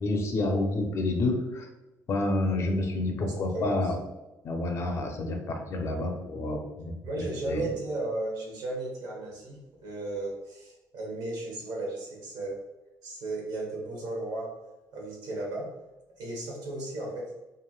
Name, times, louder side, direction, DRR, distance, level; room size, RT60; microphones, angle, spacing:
voice 1, 0.0-1.7 2.1-4.0 4.4-7.6, left 2 dB, 40° left, 3 dB, 0.5 m, -29 dB
voice 2, 3.5-3.9 7.0-12.6 13.0-14.6 14.9-15.7 16.2-17.3, right 2 dB, 75° right, -2 dB, 0.9 m, -35 dB
3.0 x 2.5 x 2.2 m, 1.0 s
cardioid pair, 155°, 7 cm